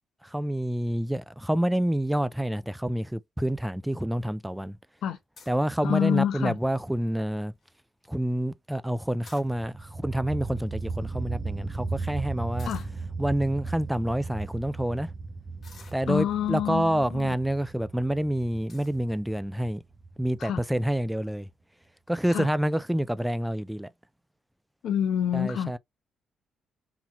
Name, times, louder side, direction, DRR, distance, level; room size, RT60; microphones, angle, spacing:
voice 1, 0.2-4.8 5.5-7.5 8.1-12.7 13.2-15.1 15.9-19.8 20.2-21.5 22.1-23.9 25.3-25.8, right 1 dB, 5° right, 0.3 m, -28 dB
sound 1, 5.4-5.7 6.3-6.6 7.1-7.2 7.4-7.7 9.0-9.9 10.7-10.8 11.0-11.1 12.6-13.0 13.7-13.8 14.4-14.5 15.6-16.5 17.3-17.6 18.0-18.1 18.7-19.0, left 4 dB, 50° left, 1.4 m, -52 dB
voice 2, 5.8-6.6 12.7-12.8 16.1-17.4 20.4-20.6 22.3-22.5 24.8-25.7, left 9 dB, 75° left, 0.8 m, -27 dB
sound 2, 9.6-21.0, right 3 dB, 35° right, 0.8 m, -36 dB
3.9 x 2.8 x 3.0 m
cardioid pair, 90°, 0 cm